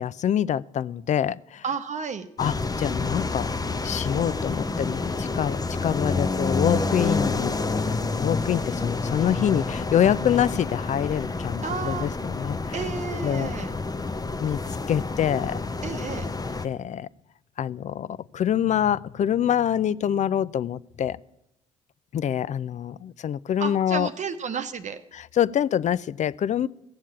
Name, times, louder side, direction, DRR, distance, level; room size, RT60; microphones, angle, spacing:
voice 1, 0.0-1.6 2.4-3.5 3.8-7.5 7.8-12.9 13.2-13.5 14.4-14.6 14.9-15.6 16.6-17.1 17.6-21.2 22.1-24.1 25.1-26.7, left 9 dB, 40° left, 21 dB, 0.4 m, -25 dB
voice 2, 1.6-2.3 11.6-12.1 12.7-13.7 15.8-16.3 23.6-25.0, right 6 dB, 40° right, 8 dB, 0.9 m, -32 dB
sound 1, 2.4-16.6, left 3 dB, 20° left, 0.9 m, -28 dB
15.0 x 7.4 x 8.6 m, 0.86 s
hypercardioid pair, 50°, 18 cm